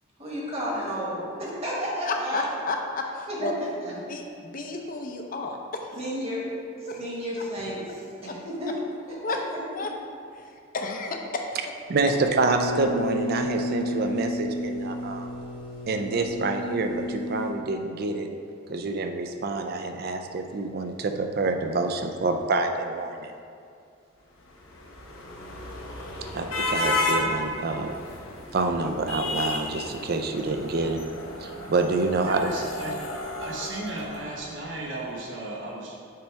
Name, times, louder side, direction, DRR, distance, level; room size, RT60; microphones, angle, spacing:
voice 1, 0.2-2.5 3.3-3.9 5.9-6.4 6.8-8.7 9.1-9.9, equal, 30° right, -5 dB, 1.3 m, -32 dB
voice 2, 2.1-3.5 4.1-6.0 6.9-7.0 8.3-8.4 9.2-9.4 9.7-9.9 10.3-11.5, left 3 dB, 40° left, 2 dB, 0.6 m, -32 dB
voice 3, 11.9-15.3 15.9-18.3 18.7-23.3 26.3-27.9 28.5-31.0 31.4-32.5, right 3 dB, 50° right, 5 dB, 0.4 m, -27 dB
sound 1, 12.0-17.5, left 1 dB, 60° left, 1.3 m, -32 dB
sound 2, 24.4-34.7, left 2 dB, 85° left, 0.9 m, -33 dB
voice 4, 32.2-33.0 33.4-36.0, right 2 dB, 65° right, -3 dB, 1.1 m, -35 dB
6.7 x 3.3 x 4.6 m, 2.4 s
head